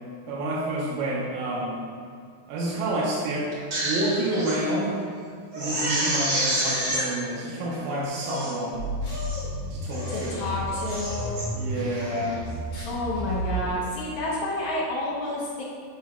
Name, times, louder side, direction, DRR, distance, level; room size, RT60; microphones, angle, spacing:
voice 1, 0.3-1.8 2.5-3.5 3.8-4.9 5.6-8.8 9.7-10.4 11.5-12.4, right 1 dB, 80° right, -5 dB, 2.1 m, -29 dB
Crying sobbing, 3.5-4.6 5.0-5.1 5.5-7.0 7.7-7.8 8.1-8.6 9.1-9.5 9.9-10.3 10.7-11.4 11.9-12.2, right 1 dB, 60° right, 1.1 m, -29 dB
sound 1, 8.7-13.7, equal, 55° left, 1.8 m, -32 dB
voice 2, 10.1-11.3 12.9-15.6, left 1 dB, 75° left, -6 dB, 1.7 m, -30 dB
9.0 x 5.9 x 2.3 m, 2.2 s
omnidirectional pair, 4.8 m